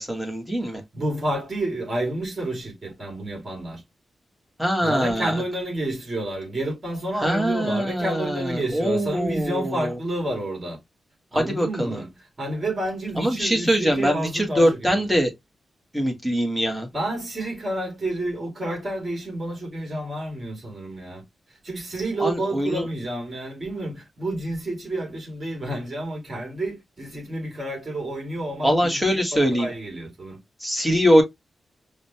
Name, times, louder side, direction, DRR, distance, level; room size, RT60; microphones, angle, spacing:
voice 1, 0.0-0.8 4.6-5.3 7.2-9.9 11.3-12.0 13.2-15.3 15.9-16.9 22.2-22.8 28.6-29.7 30.6-31.2, equal, ahead, 1.1 m, -22 dB
voice 2, 0.9-3.8 4.8-10.8 11.3-12.1 12.4-14.8 16.9-21.2 21.6-30.4, right 1 dB, 30° right, 2.2 m, -30 dB
5.0 x 2.2 x 2.7 m
wide cardioid pair, 170°, 0 cm